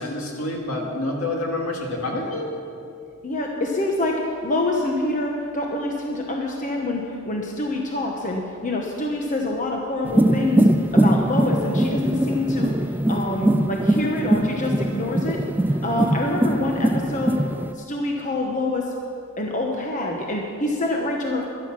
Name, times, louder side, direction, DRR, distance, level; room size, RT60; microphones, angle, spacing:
voice 1, 0.0-2.6 14.0-14.1, left 2 dB, 70° left, 0 dB, 2.3 m, -28 dB
voice 2, 3.2-12.8 13.1-15.4 15.7-17.4 17.7-18.9 19.4-21.5, left 2 dB, 35° left, 0 dB, 1.1 m, -26 dB
sound 1, 10.0-17.7, right 1 dB, 10° right, 0.3 m, -21 dB
14.0 x 11.5 x 6.2 m, 2.5 s
head